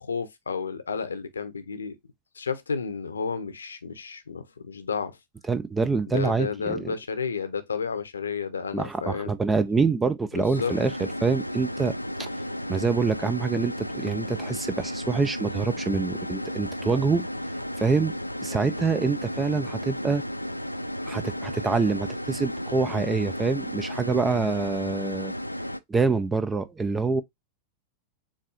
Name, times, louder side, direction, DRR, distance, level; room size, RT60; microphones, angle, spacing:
voice 1, 0.0-2.0 2.4-5.2 6.1-9.3 10.3-10.7, left 5 dB, 75° left, 0.8 m, -31 dB
voice 2, 5.5-6.9 8.7-12.3 12.7-17.3 17.8-18.1 18.4-20.2 21.1-25.3 25.9-27.2, right 4 dB, 15° right, 0.5 m, -26 dB
sound 1, 10.5-25.8, equal, 90° left, 0.3 m, -33 dB
7.2 x 2.6 x 2.5 m
figure-of-eight pair, 90°, 0 cm